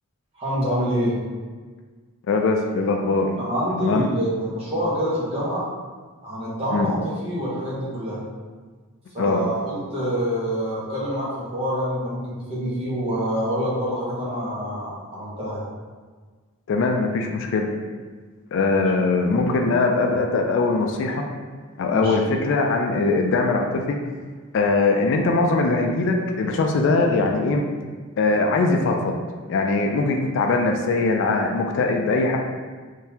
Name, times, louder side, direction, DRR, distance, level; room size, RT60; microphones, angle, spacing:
voice 1, 0.3-1.2 3.4-5.7 6.2-8.2 9.1-15.6 18.7-18.8 21.9-22.2, equal, 25° right, -8 dB, 1.0 m, -26 dB
voice 2, 2.3-3.3 3.8-4.1 6.7-6.9 9.2-9.4 16.7-17.7 18.5-21.2 21.8-24.0 24.5-27.6 28.2-29.2 29.5-32.4, left 3 dB, 55° left, 3 dB, 0.3 m, -21 dB
3.7 x 2.6 x 2.8 m, 1.5 s
head